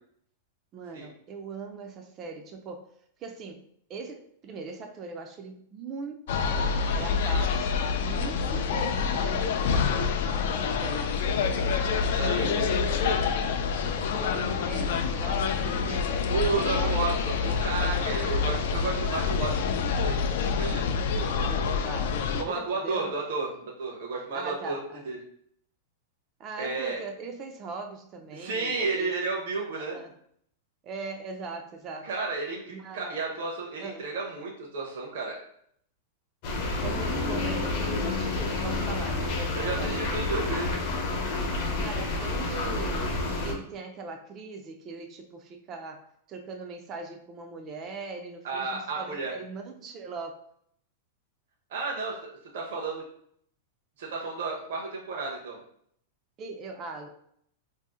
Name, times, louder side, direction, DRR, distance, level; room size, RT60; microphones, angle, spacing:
voice 1, 0.7-2.9 3.2-3.6 3.9-13.2 14.1-17.0 18.2-18.6 21.1-23.1 24.3-25.0 26.4-29.1 29.7-30.1 30.8-32.1 32.7-33.2 33.8-34.1 36.7-40.1 41.8-43.1 43.4-50.4 56.4-57.1, right 4 dB, 30° right, 4 dB, 0.3 m, -40 dB
sound 1, 6.3-22.4, left 5 dB, 65° left, 0.3 m, -27 dB
voice 2, 12.1-12.5 16.3-20.3 20.6-20.9 22.4-24.8 25.0-25.2 26.6-27.0 28.3-30.0 32.0-35.4 39.6-40.9 48.4-49.3 51.7-52.2 52.5-53.0 54.0-55.6, right 3 dB, 65° right, -2 dB, 0.7 m, -32 dB
sound 2, 36.4-43.5, left 2 dB, 50° left, 0.7 m, -29 dB
2.6 x 2.0 x 3.6 m, 0.67 s
supercardioid pair, 155°, 0 cm